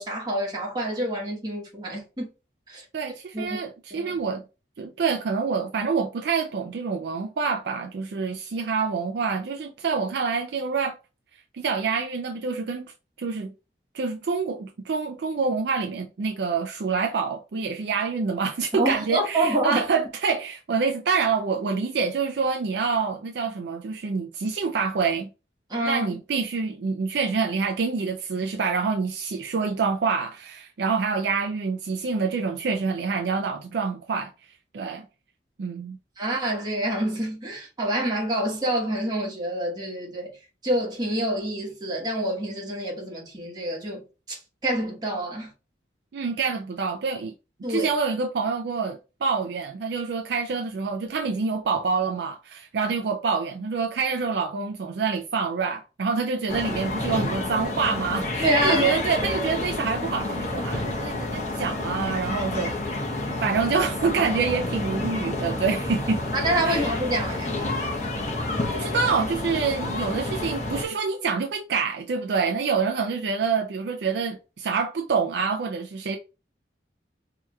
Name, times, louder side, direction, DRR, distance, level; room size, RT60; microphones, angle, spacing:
voice 1, 0.0-2.3 2.7-2.8 3.3-3.6 3.9-4.1 18.7-19.8 25.7-26.2 36.2-40.3 40.6-44.0 44.3-45.5 47.6-47.9 58.4-59.0 66.3-67.6, right 1 dB, 25° right, 1.2 m, -27 dB
voice 2, 2.9-4.4 4.8-11.0 11.3-13.5 13.9-25.3 25.8-34.3 34.7-35.1 35.6-36.0 46.1-47.3 47.7-63.0 63.4-66.2 66.6-66.9 68.7-76.2, right 5 dB, 75° right, 0.4 m, -27 dB
sound 1, 56.5-70.8, left 2 dB, 40° left, 1.0 m, -29 dB
4.5 x 2.9 x 2.3 m
head